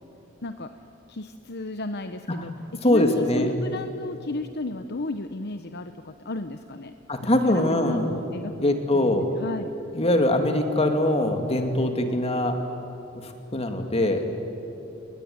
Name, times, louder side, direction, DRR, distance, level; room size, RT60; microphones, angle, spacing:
voice 1, 1.1-2.5 2.8-6.9 7.5-9.7, left 2 dB, 55° left, 8 dB, 0.9 m, -33 dB
voice 2, 2.8-3.6 7.1-8.1 8.6-9.3 9.9-12.6 13.2-14.3, left 1 dB, 30° left, 5 dB, 2.5 m, -23 dB
29.5 x 20.0 x 9.7 m, 2.9 s
head